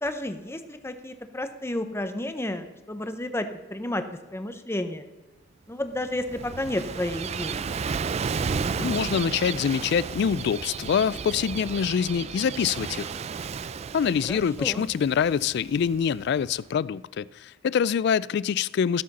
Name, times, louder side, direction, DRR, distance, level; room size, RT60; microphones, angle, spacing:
voice 1, 0.0-4.0 4.3-5.0 5.7-7.6 14.3-14.8, left 1 dB, 15° left, 0.7 m, -31 dB
Gull seagull / Waves surf, 5.9-16.5, right 5 dB, 35° right, 0.3 m, -33 dB
voice 2, 8.8-13.1 13.9-19.0, left 7 dB, 60° left, 0.3 m, -25 dB
14.0 x 7.6 x 4.1 m
head